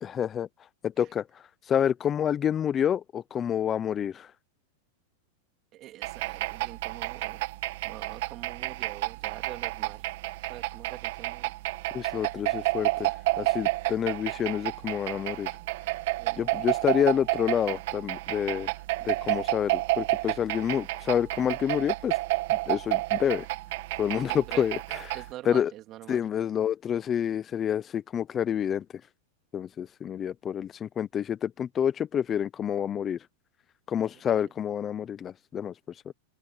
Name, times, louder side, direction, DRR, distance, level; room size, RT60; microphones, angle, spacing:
voice 1, 0.0-0.5 0.8-4.3 11.9-15.5 16.4-18.7 19.0-22.2 22.5-23.5 24.0-25.7 26.1-28.8 29.5-33.3 33.9-36.1, left 9 dB, 25° left, 0.8 m, -28 dB
voice 2, 5.7-7.4 7.8-10.1 10.5-11.5 16.2-16.6 24.3-24.7 25.1-26.2 34.3-34.4, right 14 dB, 35° right, 3.3 m, -44 dB
sound 1, 6.0-25.3, right 20 dB, 65° right, 1.6 m, -30 dB
open air
supercardioid pair, 135°, 0 cm